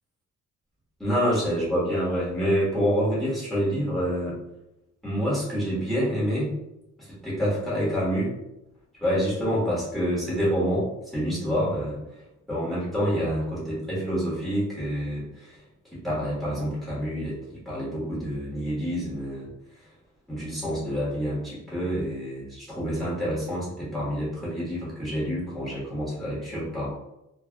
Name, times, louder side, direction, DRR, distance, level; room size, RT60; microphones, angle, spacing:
voice 1, 1.0-4.4 5.0-6.5 7.0-8.3 9.0-10.9 11.1-12.0 12.5-15.6 15.9-19.5 20.3-26.9, equal, ahead, -9 dB, 1.3 m, -27 dB
3.2 x 2.4 x 2.2 m, 0.88 s
cardioid pair, 155°, 31 cm